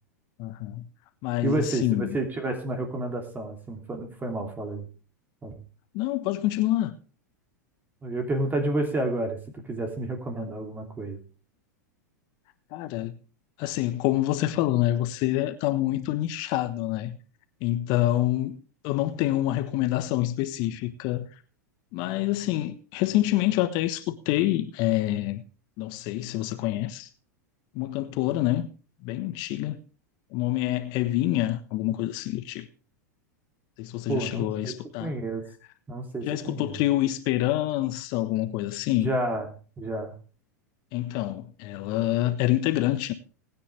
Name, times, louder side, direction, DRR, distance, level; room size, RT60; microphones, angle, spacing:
voice 1, 0.4-0.9 1.2-2.1 5.9-6.9 12.7-13.2 13.6-17.2 17.6-18.6 18.8-21.3 21.9-25.4 25.8-27.1 27.7-28.7 29.0-29.8 30.3-32.7 33.8-35.1 36.2-39.1 40.9-43.1, left 15 dB, 50° left, 1.2 m, -26 dB
voice 2, 1.4-4.9 5.4-5.5 8.0-11.2 34.1-34.7 35.0-35.4 35.9-36.7 39.0-39.5 39.8-40.2, right 2 dB, 20° right, 2.8 m, -30 dB
20.5 x 9.6 x 3.3 m
hypercardioid pair, 95°, 10 cm